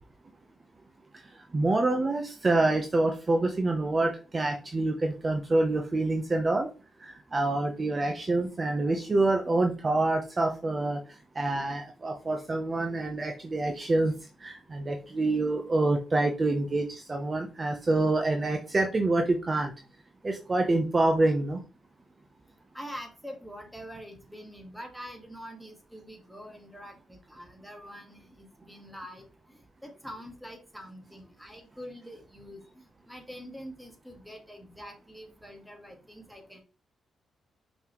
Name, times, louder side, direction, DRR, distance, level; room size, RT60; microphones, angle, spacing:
voice 1, 1.5-6.7 7.0-11.0 11.3-14.1 14.4-19.7 20.2-21.6, right 2 dB, 25° right, 3 dB, 0.9 m, -26 dB
voice 2, 22.7-29.3 29.8-36.6, equal, ahead, 3 dB, 1.8 m, -45 dB
5.8 x 5.6 x 3.1 m, 0.34 s
cardioid pair, 120°, 0 cm